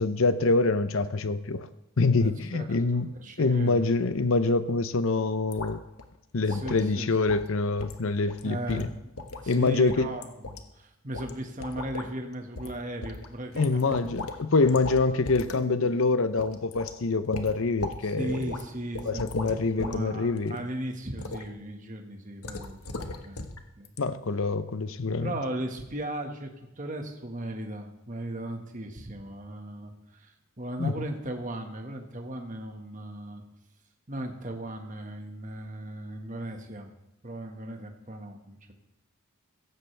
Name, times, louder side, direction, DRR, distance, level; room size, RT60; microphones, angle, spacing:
voice 1, 0.0-1.7 2.0-3.1 3.4-5.8 6.3-8.9 9.5-10.1 13.6-18.4 19.0-20.6 24.0-25.3 30.8-30.9, left 3 dB, 65° left, 12 dB, 0.7 m, -25 dB
voice 2, 2.2-2.8 3.1-3.9 6.5-7.4 8.4-14.1 14.6-14.9 15.4-15.9 18.0-23.5 23.8-23.9 25.2-26.5 26.8-33.4 34.1-36.9 37.2-38.7, right 1 dB, 35° right, 4 dB, 1.7 m, -37 dB
sound 1, 5.5-5.7 6.0-6.1 6.5-6.8 7.3-7.5 7.8-8.0 8.3-8.4 8.7-9.5 9.9-10.6 11.1-11.3 11.6-12.1 12.6-12.7 13.0-14.4 14.6-15.0 15.2-15.5 15.9-16.0 16.4-16.9 17.3-18.0 18.3-18.6 18.9-20.0 20.3-20.6 21.2-21.4 22.4-23.6 23.8-24.0, left 3 dB, 85° left, 1.4 m, -37 dB
16.5 x 15.0 x 3.4 m, 0.92 s
head